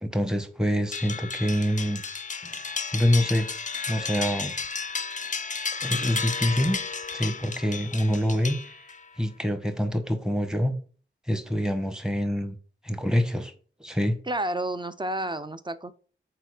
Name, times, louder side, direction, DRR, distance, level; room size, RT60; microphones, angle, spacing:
voice 1, 0.0-2.0 2.4-2.6 2.9-3.5 3.9-4.5 5.8-6.8 7.1-8.7 9.2-10.8 11.3-12.5 12.8-13.5 13.8-14.2, equal, 5° right, 1.0 m, -26 dB
sound 1, 0.9-9.1, left 5 dB, 35° left, 0.4 m, -33 dB
voice 2, 14.3-16.0, right 1 dB, 20° right, 0.5 m, -30 dB
6.8 x 4.4 x 4.8 m
wide cardioid pair, 70°, 21 cm